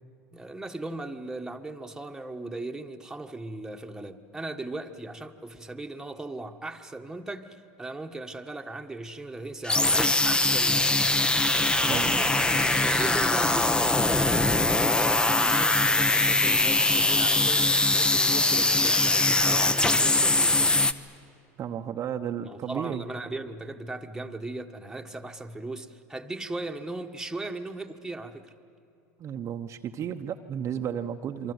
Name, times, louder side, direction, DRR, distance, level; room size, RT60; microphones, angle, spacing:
voice 1, 0.3-11.3 12.9-20.8 22.4-28.5, right 2 dB, 5° right, 4 dB, 1.4 m, -38 dB
sound 1, 9.6-20.9, left 2 dB, 10° left, 0.8 m, -22 dB
voice 2, 11.9-12.2 21.6-23.0 29.2-31.5, right 9 dB, 40° right, 5 dB, 0.9 m, -33 dB
27.5 x 24.0 x 8.1 m, 2.6 s
supercardioid pair, 105°, 8 cm